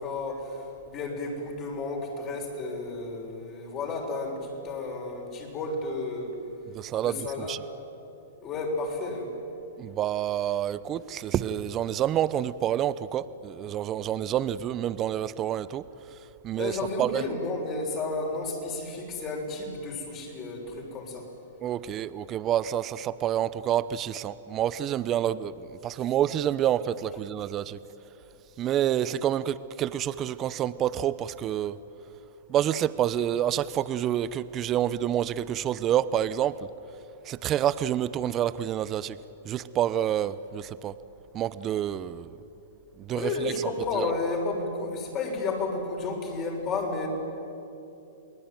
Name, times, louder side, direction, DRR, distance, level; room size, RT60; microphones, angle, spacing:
voice 1, 0.0-6.3 7.0-7.6 8.4-9.3 16.6-21.3 43.1-47.1, left 3 dB, 30° left, 0 dB, 6.7 m, -32 dB
voice 2, 6.7-7.6 9.8-15.8 16.4-17.2 21.6-27.8 28.6-31.8 32.5-36.6 37.2-39.2 39.4-40.9 41.3-42.4 43.0-43.5 43.9-44.1, right 11 dB, 30° right, 16 dB, 0.9 m, -28 dB
28.5 x 20.0 x 9.3 m, 3.0 s
hypercardioid pair, 125°, 0 cm